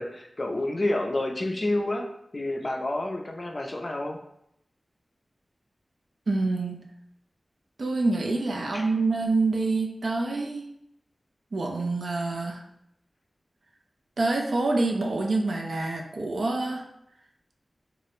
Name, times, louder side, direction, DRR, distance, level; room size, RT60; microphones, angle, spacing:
voice 1, 0.0-2.1 2.3-4.2 8.7-8.9, left 1 dB, 35° left, 3 dB, 0.3 m, -29 dB
voice 2, 6.3-6.8 7.8-10.6 11.5-12.6 14.2-16.8, right 3 dB, 75° right, 2 dB, 0.3 m, -26 dB
2.3 x 2.0 x 2.9 m, 0.78 s
wide cardioid pair, 90°, 0 cm